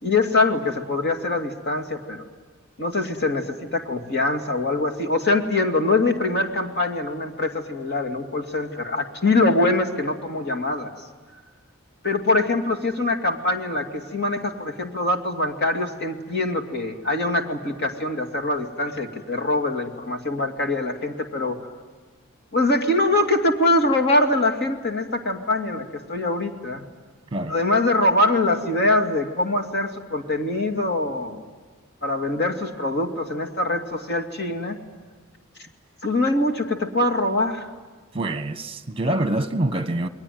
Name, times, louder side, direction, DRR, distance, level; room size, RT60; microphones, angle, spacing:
voice 1, 0.0-2.3 2.8-10.9 12.0-21.6 22.5-26.8 27.5-31.4 32.0-34.8 36.0-37.7, left 2 dB, 55° left, 2.5 m, -23 dB
voice 2, 38.1-40.1, right 1 dB, 25° right, 1.3 m, -25 dB
29.0 x 22.0 x 9.4 m
head